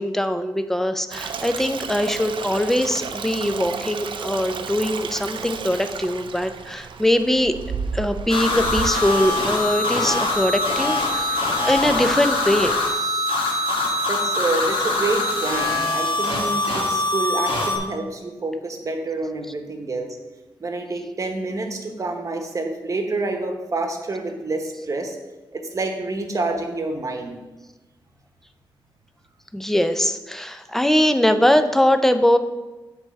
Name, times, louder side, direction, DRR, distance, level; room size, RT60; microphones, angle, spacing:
voice 1, 0.0-7.6 7.9-13.6 29.5-32.4, left 1 dB, 5° left, 9 dB, 0.5 m, -22 dB
Stream, 1.1-12.9, right 5 dB, 65° right, 0.5 m, -34 dB
sound 1, 8.3-17.8, left 2 dB, 75° left, 1.7 m, -23 dB
voice 2, 14.1-20.2 20.6-25.2 25.5-27.3, right 2 dB, 35° right, 4 dB, 1.1 m, -28 dB
8.0 x 3.4 x 6.3 m, 1.1 s
cardioid pair, 100°, 9 cm